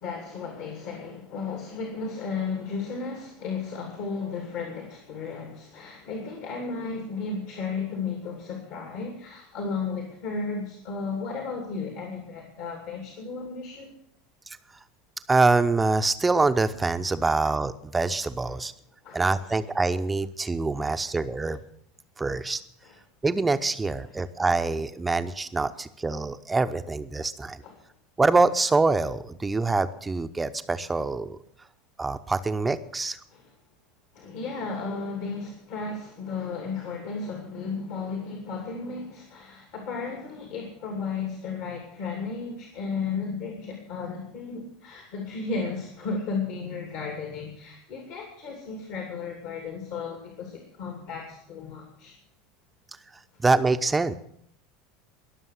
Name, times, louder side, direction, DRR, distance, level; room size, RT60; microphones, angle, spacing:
voice 1, 0.0-13.9 18.5-18.6 19.0-19.5 20.8-21.1 22.8-23.0 27.6-27.8 33.3-33.5 34.1-52.1, left 4 dB, 55° left, 3 dB, 2.6 m, -34 dB
voice 2, 15.3-18.7 19.1-21.6 22.2-22.6 23.2-27.6 28.2-31.4 32.0-33.2 53.4-54.2, right 3 dB, 15° right, 11 dB, 0.9 m, -25 dB
22.0 x 7.3 x 6.4 m, 0.71 s
figure-of-eight pair, 75°, 0 cm